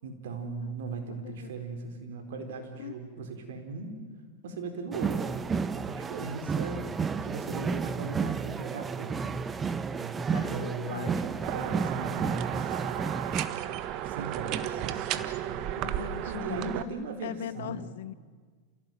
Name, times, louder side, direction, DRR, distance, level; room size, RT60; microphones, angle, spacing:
voice 1, 0.0-4.0 4.4-5.4 5.9-6.9 7.2-9.3 10.0-12.8 14.0-15.7 16.3-17.9, right 3 dB, 75° right, 5 dB, 4.4 m, -38 dB
voice 2, 1.1-1.5 2.8-3.0 10.3-11.2 15.8-16.7 17.2-18.1, left 13 dB, 75° left, 17 dB, 1.0 m, -40 dB
sound 1, 4.9-13.5, right 5 dB, 20° right, 1.0 m, -32 dB
sound 2, 11.4-16.8, right 12 dB, 50° right, 1.4 m, -33 dB
29.0 x 16.5 x 9.3 m, 1.5 s
hypercardioid pair, 115°, 0 cm